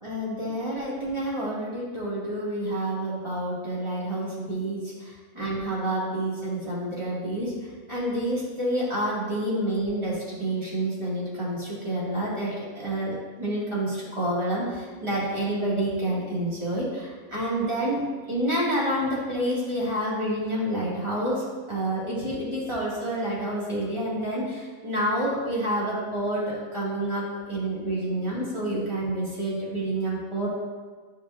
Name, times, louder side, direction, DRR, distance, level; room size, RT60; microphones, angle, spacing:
voice 1, 0.0-7.5 7.9-30.5, right 1 dB, 20° right, -8 dB, 2.3 m, -28 dB
12.0 x 4.8 x 2.6 m, 1.5 s
omnidirectional pair, 1.5 m